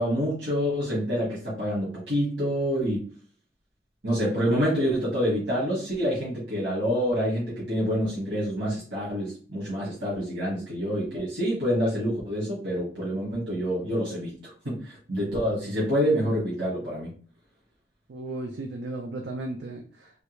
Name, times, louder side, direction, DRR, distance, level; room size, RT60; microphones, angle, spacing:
voice 1, 0.0-3.1 4.0-14.3 14.6-17.1, equal, 90° right, -7 dB, 1.5 m, -27 dB
voice 2, 18.1-20.2, right 2 dB, 70° right, 3 dB, 0.4 m, -35 dB
3.3 x 2.3 x 3.0 m, 0.41 s
head